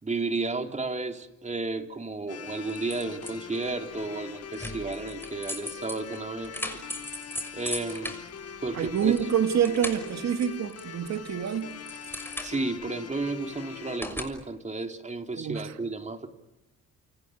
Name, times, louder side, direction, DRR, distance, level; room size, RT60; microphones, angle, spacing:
voice 1, 0.0-6.8 7.5-8.2 8.6-9.1 12.4-16.3, right 3 dB, 25° right, 3.7 m, -33 dB
sound 1, 2.3-14.0, left 7 dB, 55° left, 2.2 m, -42 dB
sound 2, 2.7-3.6 4.5-9.3 9.5-11.1 11.4-12.9 14.0-14.2, left 1 dB, 5° left, 6.2 m, -38 dB
voice 2, 8.7-11.8 15.4-15.7, right 8 dB, 60° right, 2.5 m, -27 dB
29.5 x 29.0 x 6.7 m
cardioid pair, 90°, 30 cm